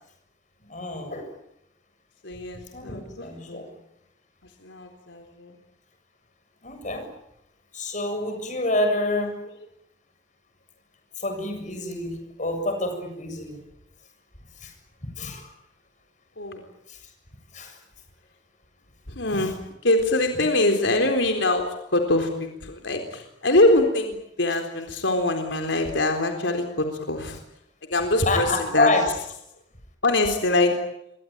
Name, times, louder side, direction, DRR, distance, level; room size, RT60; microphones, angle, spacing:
voice 1, 0.7-1.3 2.7-3.7 6.6-7.1 7.7-9.4 11.2-13.6 14.6-14.7 15.0-15.5 16.9-17.0 17.5-17.8 19.3-19.5 28.3-29.1, left 2 dB, 45° left, 6 dB, 7.3 m, -27 dB
voice 2, 2.2-3.7 4.6-5.5 16.4-16.7 19.1-19.5 19.8-27.4 27.9-28.9 30.0-30.7, left 2 dB, 85° left, 4 dB, 3.9 m, -23 dB
28.0 x 23.0 x 8.9 m, 0.79 s
head